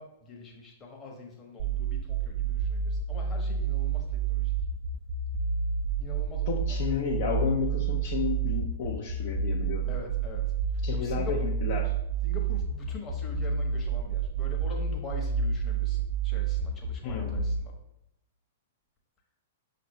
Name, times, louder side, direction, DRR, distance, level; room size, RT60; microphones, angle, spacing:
voice 1, 0.0-4.5 6.0-6.8 9.9-11.5 12.2-17.7, left 3 dB, 20° left, 0 dB, 0.9 m, -44 dB
sound 1, 1.6-17.6, right 6 dB, 45° right, 0.6 m, -29 dB
voice 2, 6.5-9.9 10.8-11.9 17.0-17.5, left 6 dB, 45° left, -1 dB, 0.5 m, -32 dB
6.0 x 2.5 x 3.1 m, 0.81 s
figure-of-eight pair, 105°, 0 cm